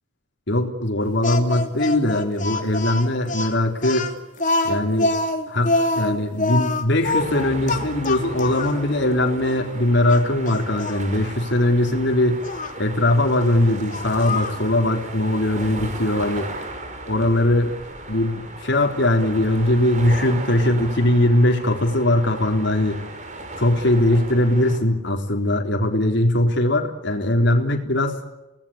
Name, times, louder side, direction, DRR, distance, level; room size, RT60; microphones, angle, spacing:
voice 1, 0.5-4.1 4.6-5.1 5.5-12.4 12.8-16.5 17.1-17.7 18.1-23.0 23.6-28.1, left 1 dB, 65° left, 2 dB, 3.9 m, -20 dB
Speech, 1.2-8.8 9.4-9.6 10.1-11.0 12.4-12.7 13.9-14.7, left 2 dB, 40° left, 3.0 m, -25 dB
sound 1, 7.0-24.8, right 2 dB, 40° right, 5.8 m, -36 dB
30.0 x 19.5 x 8.8 m, 1.0 s
head